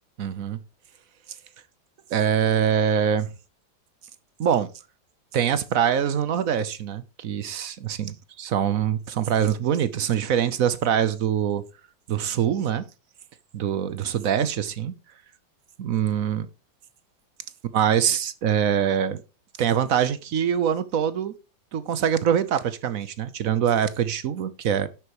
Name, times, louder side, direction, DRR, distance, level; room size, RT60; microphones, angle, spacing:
voice 1, 0.2-0.6 2.1-3.3 4.4-4.7 5.3-11.6 12.1-12.8 13.5-14.9 15.8-16.5 17.7-19.2 19.6-21.3 21.7-24.9, right 8 dB, 60° right, 1.0 m, -24 dB
11.0 x 8.0 x 3.0 m
omnidirectional pair, 2.0 m